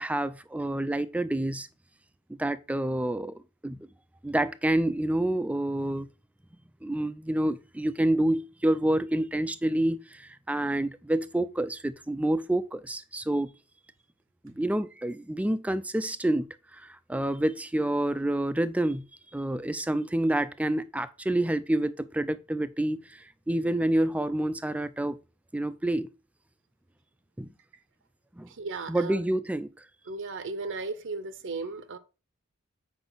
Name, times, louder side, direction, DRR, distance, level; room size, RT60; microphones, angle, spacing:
voice 1, 0.0-1.7 2.3-3.9 4.2-6.1 6.8-13.5 14.4-19.1 19.3-25.2 25.5-26.1 27.4-27.5 28.4-28.5 28.9-29.7, right 1 dB, 5° right, 0.4 m, -28 dB
voice 2, 28.5-29.2 30.1-32.0, right 3 dB, 55° right, 0.8 m, -35 dB
8.0 x 5.2 x 4.0 m
head